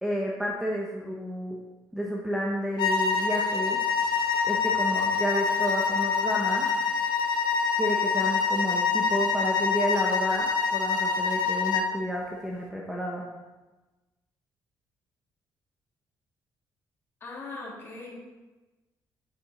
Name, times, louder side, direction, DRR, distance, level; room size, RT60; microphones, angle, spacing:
voice 1, 0.0-1.6 1.9-3.8 4.4-6.7 7.8-13.3, equal, 5° right, -3 dB, 1.0 m, -31 dB
sound 1, 2.8-11.9, left 5 dB, 75° left, 1.5 m, -26 dB
voice 2, 17.2-18.2, left 3 dB, 30° left, -4 dB, 2.9 m, -40 dB
8.9 x 8.6 x 4.3 m, 1.1 s
cardioid pair, 175°, 8 cm